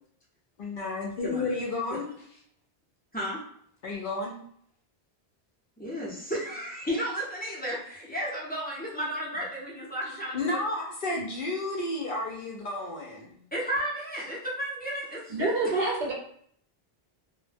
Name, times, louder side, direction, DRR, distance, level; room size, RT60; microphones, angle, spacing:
voice 1, 0.6-2.1 3.8-4.4 10.3-13.4, left 2 dB, 60° left, -1 dB, 0.7 m, -32 dB
voice 2, 1.2-1.5 3.1-3.4 5.8-10.6 13.5-15.9, equal, 10° left, -6 dB, 0.5 m, -33 dB
voice 3, 15.3-16.1, right 2 dB, 55° right, -2 dB, 0.6 m, -27 dB
2.1 x 2.1 x 3.2 m, 0.64 s
omnidirectional pair, 1.1 m